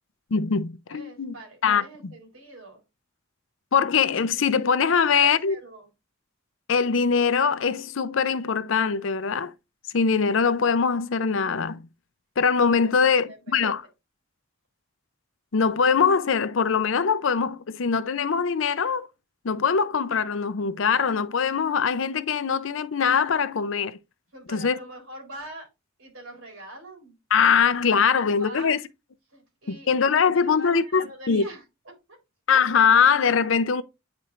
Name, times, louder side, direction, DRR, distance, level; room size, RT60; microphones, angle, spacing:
voice 1, 0.3-1.3 1.6-1.8 3.7-5.5 6.7-9.5 9.9-11.9 12.4-13.8 15.5-19.1 19.4-24.0 24.5-24.8 27.3-28.8 29.7-31.4 32.5-33.8, left 6 dB, 70° left, 0.5 m, -22 dB
voice 2, 0.9-2.8 5.0-5.9 12.8-13.8 24.3-25.7 26.0-27.2 28.0-28.8 29.3-32.2, right 1 dB, 80° right, 3.6 m, -44 dB
9.7 x 4.3 x 2.5 m
head